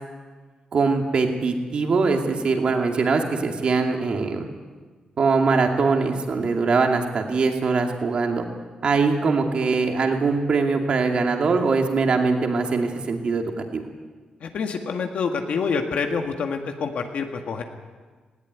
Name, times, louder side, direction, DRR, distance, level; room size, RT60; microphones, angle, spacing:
voice 1, 0.7-4.5 5.2-8.5 8.8-13.8, right 4 dB, 45° right, 3 dB, 2.4 m, -22 dB
voice 2, 14.4-17.6, left 5 dB, 65° left, 4 dB, 1.8 m, -27 dB
19.0 x 18.0 x 9.5 m, 1.4 s
wide cardioid pair, 175°, 2 cm